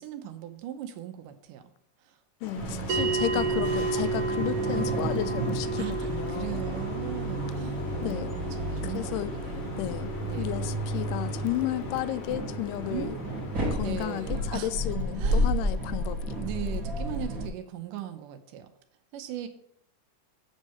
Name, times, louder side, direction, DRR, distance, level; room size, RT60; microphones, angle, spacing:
voice 1, 0.0-1.7 2.0-2.2 2.5-3.6 5.8-10.6 12.9-13.2 13.8-14.7 15.2-15.6 16.4-18.7 19.1-19.5, right 11 dB, 85° right, 8 dB, 2.4 m, -39 dB
voice 2, 2.4-6.6 8.0-8.3 8.8-9.3 9.8-10.1 10.4-13.1 13.7-16.4, left 14 dB, 85° left, 14 dB, 2.1 m, -33 dB
sound 1, 2.4-14.4, left 5 dB, 55° left, 1.5 m, -41 dB
sound 2, 2.6-17.5, right 1 dB, 40° right, 2.5 m, -32 dB
sound 3, 2.9-13.4, right 4 dB, 65° right, 1.5 m, -34 dB
8.0 x 6.4 x 5.6 m, 0.72 s
omnidirectional pair, 3.7 m